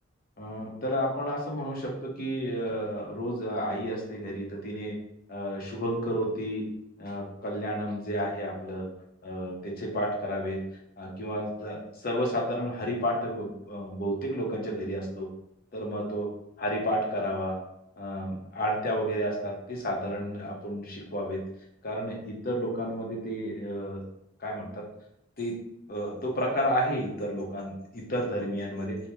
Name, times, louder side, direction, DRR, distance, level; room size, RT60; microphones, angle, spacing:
voice 1, 0.4-5.0 5.3-6.6 7.0-8.9 9.2-10.6 11.0-15.3 15.7-16.3 16.6-17.6 18.0-21.4 21.8-24.0 24.4-24.8 25.4-25.6 25.9-29.0, equal, 45° left, -2 dB, 0.7 m, -31 dB
2.8 x 2.0 x 3.4 m, 0.82 s
head